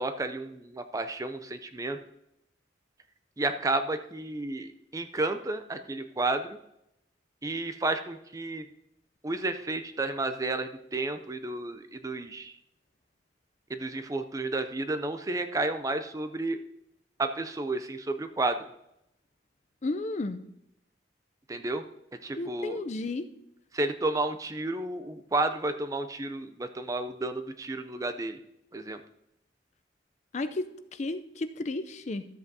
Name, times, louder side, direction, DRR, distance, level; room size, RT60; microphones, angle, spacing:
voice 1, 0.0-2.0 3.4-6.6 7.4-8.6 9.2-12.5 13.7-16.6 17.2-18.6 21.5-21.8 22.2-22.8 23.7-28.4 28.7-29.0, right 2 dB, 15° right, 9 dB, 0.4 m, -31 dB
voice 2, 19.8-20.4 22.4-23.3 30.3-30.6 31.0-32.3, left 2 dB, 40° left, 10 dB, 0.4 m, -32 dB
13.0 x 7.8 x 2.7 m, 0.83 s
head